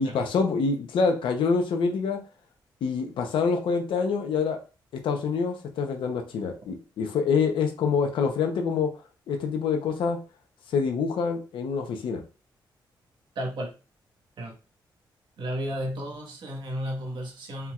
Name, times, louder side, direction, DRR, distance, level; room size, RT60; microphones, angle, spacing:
voice 1, 0.0-2.2 2.8-4.6 5.0-8.9 9.3-10.2 10.7-12.2, left 5 dB, 90° left, 4 dB, 0.8 m, -26 dB
voice 2, 13.3-13.8 14.4-14.5 15.4-17.7, equal, 65° right, 1 dB, 1.4 m, -33 dB
4.4 x 3.6 x 2.4 m, 0.32 s
cardioid pair, 95°, 8 cm